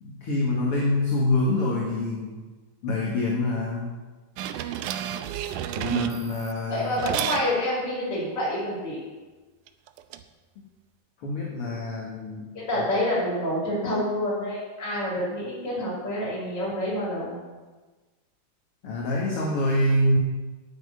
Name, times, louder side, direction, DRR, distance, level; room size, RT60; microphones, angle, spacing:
voice 1, 0.0-2.4 2.8-3.9 5.8-7.0 11.2-12.5 18.8-20.2, left 1 dB, 50° left, -3 dB, 2.5 m, -25 dB
sound 1, 4.4-6.5 7.0-7.5 9.7-10.2, right 11 dB, 80° right, 2.2 m, -30 dB
voice 2, 6.7-9.0 12.5-17.4, left 1 dB, 20° left, -7 dB, 5.8 m, -27 dB
9.6 x 9.3 x 8.7 m, 1.3 s
omnidirectional pair, 3.8 m